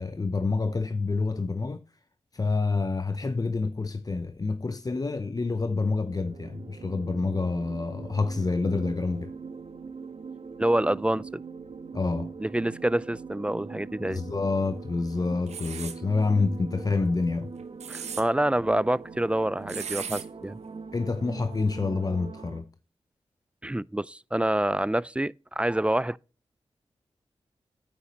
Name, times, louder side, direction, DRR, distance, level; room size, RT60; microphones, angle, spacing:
voice 1, 0.0-1.8 2.3-9.3 11.9-12.3 14.0-17.5 20.9-22.7, left 3 dB, 35° left, 0.6 m, -28 dB
sound 1, 6.0-22.6, right 5 dB, 60° right, 1.1 m, -42 dB
voice 2, 10.6-11.4 12.4-14.2 17.9-20.6 23.6-26.2, right 1 dB, 10° right, 0.3 m, -27 dB
sound 2, 15.5-16.0 17.6-18.2 19.7-20.2, right 7 dB, 85° right, 1.0 m, -36 dB
9.6 x 8.5 x 2.9 m
cardioid pair, 40°, 11 cm